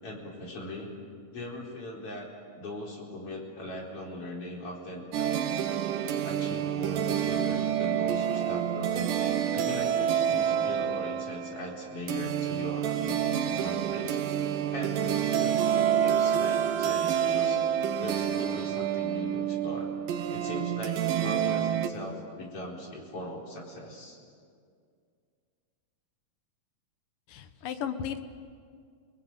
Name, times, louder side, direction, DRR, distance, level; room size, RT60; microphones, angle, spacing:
voice 1, 0.0-0.9 1.3-2.3 2.6-5.1 6.2-9.1 9.5-14.2 14.7-17.6 18.0-19.9 20.3-24.2, left 1 dB, 45° left, -1 dB, 5.3 m, -40 dB
sound 1, 5.1-21.9, right 9 dB, 85° right, 2.9 m, -28 dB
voice 2, 27.3-28.2, left 8 dB, 80° left, 8 dB, 2.9 m, -35 dB
30.0 x 20.5 x 9.3 m, 2.2 s
omnidirectional pair, 3.8 m